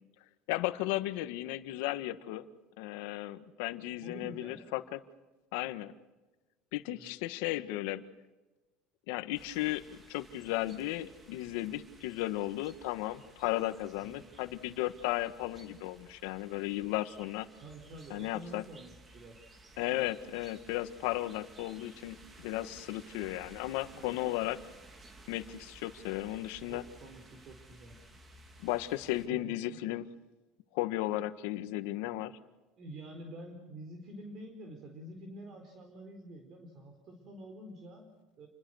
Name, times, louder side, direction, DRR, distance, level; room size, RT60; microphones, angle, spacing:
voice 1, 0.5-2.4 2.8-5.0 5.5-5.9 6.7-8.0 9.1-17.5 18.1-18.6 19.8-24.6 25.3-26.8 28.6-30.0 30.7-32.3, left 16 dB, 80° left, 11 dB, 1.6 m, -35 dB
voice 2, 4.0-4.6 6.9-7.2 14.0-14.3 17.6-19.4 23.9-24.2 26.7-28.0 29.3-29.9 32.8-38.5, right 1 dB, 40° right, 5 dB, 4.3 m, -48 dB
sound 1, 9.3-29.3, right 2 dB, 20° right, 2.8 m, -56 dB
29.0 x 21.5 x 6.5 m, 1.1 s
cardioid pair, 145°, 0 cm